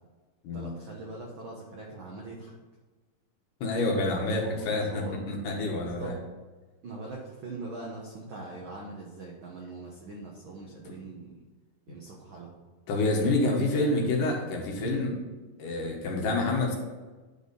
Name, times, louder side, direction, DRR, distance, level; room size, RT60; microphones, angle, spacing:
voice 1, 0.5-2.5 4.4-5.3 5.8-6.2 6.8-11.4 11.9-12.5 13.3-14.0 14.8-15.0, right 3 dB, 85° right, -1 dB, 1.1 m, -42 dB
voice 2, 3.6-6.2 12.9-15.1 15.6-16.8, left 2 dB, 75° left, 0 dB, 2.9 m, -28 dB
10.0 x 4.2 x 5.4 m, 1.3 s
omnidirectional pair, 3.8 m